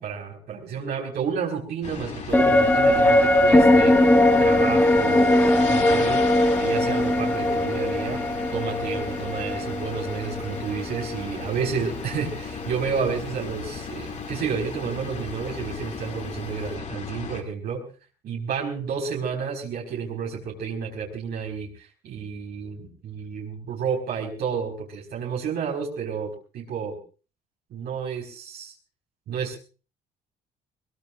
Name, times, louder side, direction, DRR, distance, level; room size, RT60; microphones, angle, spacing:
voice 1, 0.0-3.9 4.4-6.2 6.6-8.2 8.5-17.8 18.2-27.0 27.7-28.7 29.3-29.6, right 6 dB, 70° right, -2 dB, 4.8 m, -31 dB
sound 1, 1.8-17.4, left 5 dB, 40° left, 2.8 m, -36 dB
sound 2, 2.3-11.8 12.2-12.3, left 1 dB, 10° left, 1.8 m, -20 dB
22.5 x 21.5 x 2.5 m, 0.36 s
cardioid pair, 110°, 17 cm